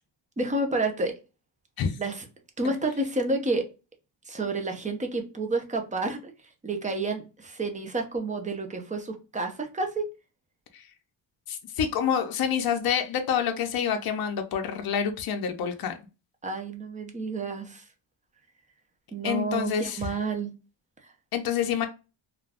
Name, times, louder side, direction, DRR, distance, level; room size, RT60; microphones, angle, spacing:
voice 1, 0.4-1.1 2.0-2.2 2.6-3.7 4.3-6.3 6.6-10.1 16.4-17.8 19.1-20.5 21.0-21.1, right 2 dB, 15° right, 4 dB, 0.4 m, -30 dB
voice 2, 11.5-16.0 19.2-20.1 21.3-21.9, left 8 dB, 50° left, 5 dB, 0.5 m, -27 dB
2.4 x 2.2 x 3.2 m, 0.30 s
wide cardioid pair, 155°, 47 cm